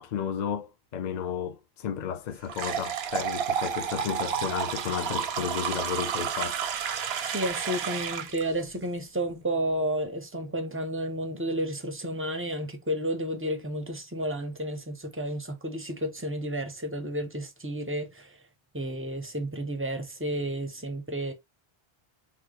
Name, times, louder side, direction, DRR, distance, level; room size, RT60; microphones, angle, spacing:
voice 1, 0.0-6.6, left 8 dB, 55° left, 0.6 m, -33 dB
sound 1, 2.5-8.4, right 7 dB, 80° right, 0.8 m, -31 dB
voice 2, 7.2-18.4 18.7-21.3, right 1 dB, 20° right, 0.4 m, -31 dB
3.6 x 2.2 x 2.8 m
omnidirectional pair, 1.0 m